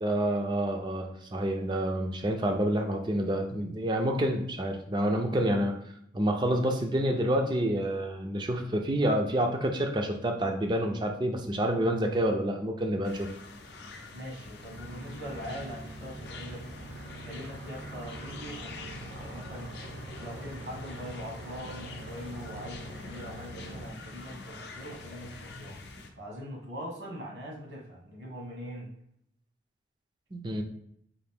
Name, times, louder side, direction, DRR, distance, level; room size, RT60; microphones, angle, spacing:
voice 1, 0.0-5.8 6.1-13.3 30.3-30.6, right 1 dB, 25° right, 3 dB, 0.4 m, -28 dB
sound 1, 13.0-26.1, left 3 dB, 65° left, 0.5 m, -46 dB
voice 2, 14.1-16.7 17.1-19.8 20.2-25.8 26.2-28.9, equal, 75° right, -3 dB, 1.4 m, -42 dB
sound 2, 14.7-23.9, right 1 dB, 60° right, 0.7 m, -44 dB
3.8 x 2.5 x 3.5 m, 0.72 s
head